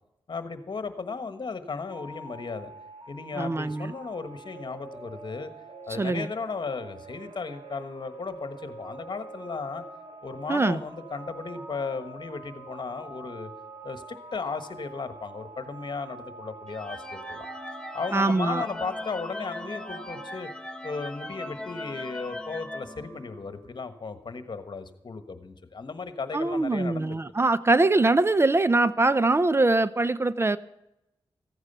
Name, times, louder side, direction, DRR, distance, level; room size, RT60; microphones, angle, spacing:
voice 1, 0.3-2.7 3.1-5.5 5.9-9.8 10.2-13.5 13.8-14.0 14.3-17.5 17.9-20.5 20.8-27.2, left 4 dB, 50° left, 10 dB, 1.4 m, -35 dB
sound 1, 1.9-20.4, right 3 dB, 80° right, 2.6 m, -45 dB
voice 2, 3.4-3.9 5.9-6.3 10.5-10.8 18.1-18.6 26.3-30.6, right 2 dB, 25° right, 16 dB, 0.5 m, -23 dB
sound 2, 16.7-23.7, left 1 dB, 10° left, 1.0 m, -39 dB
15.0 x 9.6 x 6.9 m, 0.89 s
cardioid pair, 65°, 10 cm